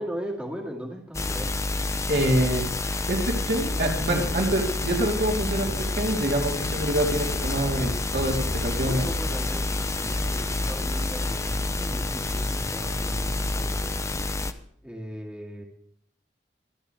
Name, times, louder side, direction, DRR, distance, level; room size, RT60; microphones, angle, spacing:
voice 1, 0.0-1.6 8.8-14.0 14.8-15.6, equal, 5° right, -2 dB, 2.2 m, -37 dB
sound 1, 1.1-14.5, left 2 dB, 15° left, 0.6 m, -28 dB
voice 2, 2.1-2.7 3.1-9.0, right 1 dB, 65° right, -1 dB, 3.4 m, -26 dB
25.0 x 10.0 x 3.4 m, 0.67 s
head